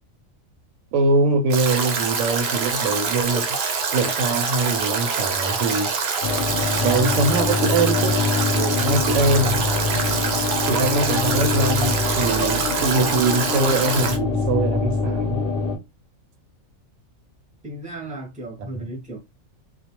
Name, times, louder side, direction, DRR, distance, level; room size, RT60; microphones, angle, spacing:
voice 1, 0.9-3.5 3.9-5.9 6.8-8.2 8.5-9.6 10.6-15.4 18.7-18.9, right 3 dB, 80° right, 1.0 m, -23 dB
Stream / Drip / Trickle dribble, 1.5-14.2, right 5 dB, 65° right, 0.7 m, -25 dB
sound 1, 6.2-15.8, left 3 dB, 60° left, 0.7 m, -24 dB
voice 2, 17.6-19.2, right 1 dB, 10° right, 0.6 m, -35 dB
2.5 x 2.1 x 2.8 m
omnidirectional pair, 1.4 m